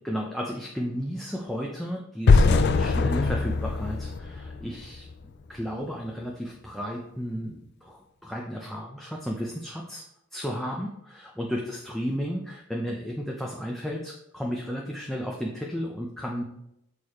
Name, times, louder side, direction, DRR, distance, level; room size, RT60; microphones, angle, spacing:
voice 1, 0.0-5.1 5.5-10.1 10.3-16.4, equal, ahead, -1 dB, 0.6 m, -33 dB
sound 1, 2.3-5.3, left 4 dB, 55° left, 0.4 m, -22 dB
6.8 x 4.8 x 4.2 m, 0.81 s
head